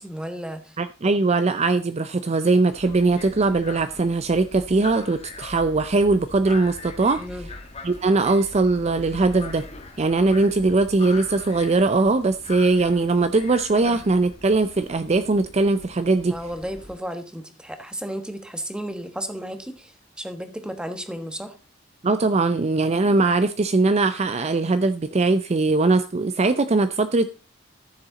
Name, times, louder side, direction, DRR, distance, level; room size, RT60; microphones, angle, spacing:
voice 1, 0.0-0.8 7.2-7.5 13.9-14.0 16.3-19.9 20.2-21.5, equal, 5° right, 1.3 m, -33 dB
voice 2, 0.8-7.2 7.8-9.6 10.0-16.3 22.0-27.4, right 3 dB, 35° right, 0.5 m, -21 dB
sound 1, 2.7-17.0, left 3 dB, 35° left, 1.5 m, -41 dB
13.5 x 7.1 x 4.0 m
head